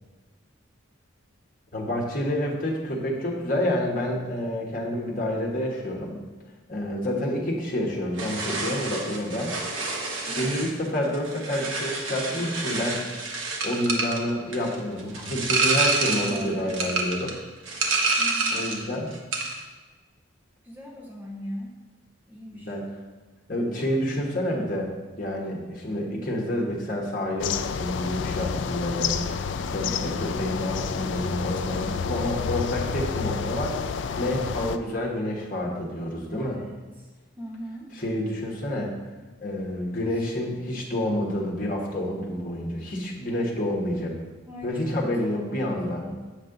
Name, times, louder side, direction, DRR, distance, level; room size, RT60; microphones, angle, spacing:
voice 1, 1.7-6.2 6.7-7.4 7.7-9.5 10.4-13.0 13.6-17.4 18.5-19.1 22.5-22.8 23.5-24.9 25.2-33.7 34.2-36.6 38.0-38.9 39.4-44.1 44.6-46.0, left 1 dB, 45° left, -2 dB, 1.3 m, -28 dB
voice 2, 7.1-7.4 10.2-10.6 16.1-17.0 18.2-18.6 20.6-21.7 22.3-22.8 36.3-37.1 37.4-38.0 40.1-40.3 44.5-46.2, equal, 10° right, -2 dB, 0.8 m, -40 dB
sound 1, 8.2-18.9 19.1-19.6, right 3 dB, 85° right, 1.0 m, -28 dB
sound 2, 27.4-34.8, left 6 dB, 70° left, 0.3 m, -29 dB
7.7 x 5.3 x 3.9 m, 1.3 s
head